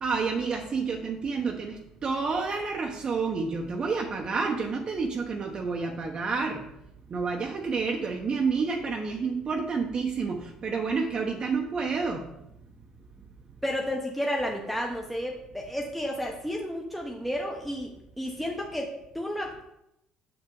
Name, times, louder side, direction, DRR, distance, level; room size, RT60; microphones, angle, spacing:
voice 1, 0.0-6.6 7.1-12.3, right 4 dB, 45° right, 1 dB, 0.9 m, -29 dB
voice 2, 13.6-17.9 18.2-19.6, equal, ahead, -1 dB, 1.0 m, -32 dB
6.4 x 5.8 x 3.8 m, 0.81 s
supercardioid pair, 85°, 2 cm